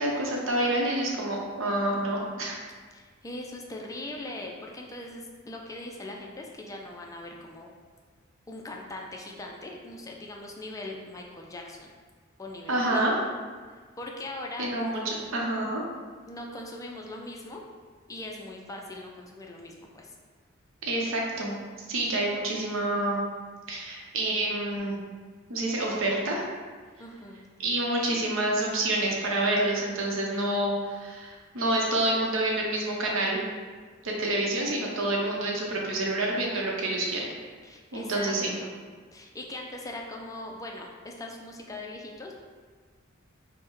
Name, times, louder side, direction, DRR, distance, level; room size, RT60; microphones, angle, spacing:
voice 1, 0.0-2.6 12.7-13.1 14.6-15.8 20.8-21.5 21.9-23.2 23.7-25.0 25.5-26.4 27.6-33.4 34.0-37.3 37.9-38.5, right 1 dB, 75° right, -2 dB, 0.7 m, -28 dB
voice 2, 2.9-7.7 8.5-11.9 12.4-13.0 13.7-15.3 16.3-17.6 18.1-20.1 27.0-27.4 37.6-38.9 39.1-42.3, left 2 dB, 15° left, 0 dB, 0.3 m, -40 dB
5.4 x 2.1 x 3.0 m, 1.5 s
head